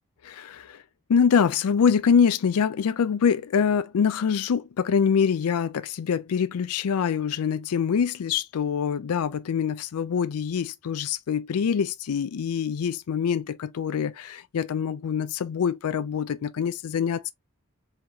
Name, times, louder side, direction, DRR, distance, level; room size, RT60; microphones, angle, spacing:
voice 1, 0.2-0.8 1.1-17.3, left 7 dB, 85° left, 0.4 m, -24 dB
4.3 x 3.9 x 2.8 m
head